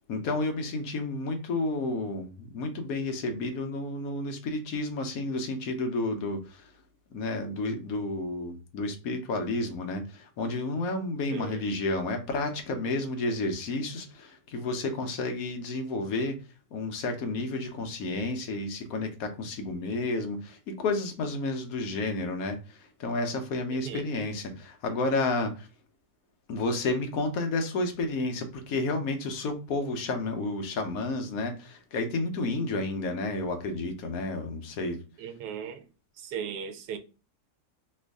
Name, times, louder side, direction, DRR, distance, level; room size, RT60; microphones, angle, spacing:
voice 1, 0.1-6.6 7.1-16.4 16.7-25.7 26.5-35.0, left 2 dB, 65° left, 1.0 m, -31 dB
voice 2, 11.3-11.6 23.7-24.0 35.2-35.8 36.2-37.0, right 7 dB, 85° right, 1.1 m, -37 dB
3.1 x 2.5 x 3.3 m
omnidirectional pair, 1.7 m